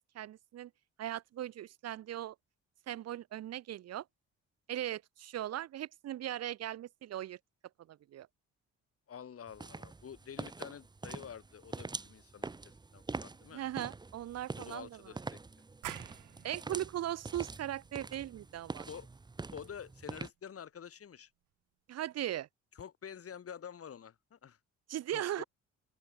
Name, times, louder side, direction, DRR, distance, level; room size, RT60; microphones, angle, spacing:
voice 1, 0.1-0.7 1.0-2.4 2.9-4.0 4.7-7.4 7.9-8.3 13.5-15.0 16.4-18.9 21.9-22.5 24.9-25.4, right 12 dB, 60° right, 0.6 m, -38 dB
voice 2, 9.1-13.6 14.6-15.4 18.9-19.1 19.5-21.3 22.8-24.6 25.1-25.5, left 8 dB, 50° left, 2.6 m, -48 dB
sound 1, 9.5-20.3, right 3 dB, 15° right, 0.6 m, -45 dB
sound 2, 15.8-21.2, right 14 dB, 85° right, 6.9 m, -51 dB
open air
cardioid pair, 90°, 30 cm